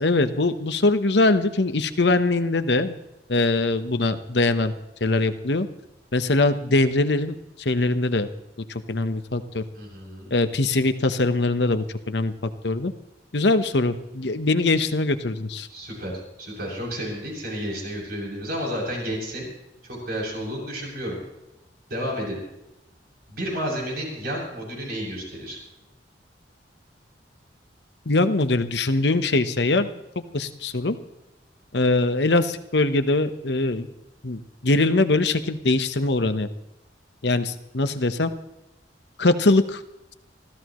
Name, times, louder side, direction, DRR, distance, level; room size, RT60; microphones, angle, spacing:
voice 1, 0.0-3.0 3.3-4.7 5.0-5.7 6.1-8.3 8.9-9.6 10.3-12.3 12.6-12.9 13.3-15.7 28.1-29.9 30.3-31.0 31.7-33.9 34.2-36.5 37.2-38.3 39.2-39.8, left 2 dB, 65° left, 10 dB, 1.1 m, -22 dB
voice 2, 9.7-10.3 15.7-19.5 19.8-21.2 21.9-22.4 23.3-25.6, equal, 60° right, -2 dB, 7.4 m, -31 dB
25.5 x 15.0 x 3.1 m, 0.89 s
head